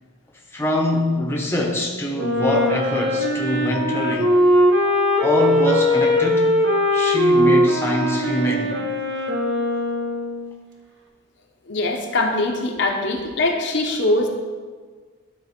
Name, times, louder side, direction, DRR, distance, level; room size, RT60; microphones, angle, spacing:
voice 1, 0.5-4.4 5.2-6.5 6.9-8.7, left 1 dB, 10° left, -1 dB, 0.9 m, -23 dB
Wind instrument woodwind instrument, 2.1-10.5, left 1 dB, 60° right, 1.0 m, -20 dB
voice 2, 11.7-14.3, left 2 dB, 60° left, 2 dB, 0.9 m, -22 dB
12.0 x 4.2 x 4.4 m, 1.5 s
head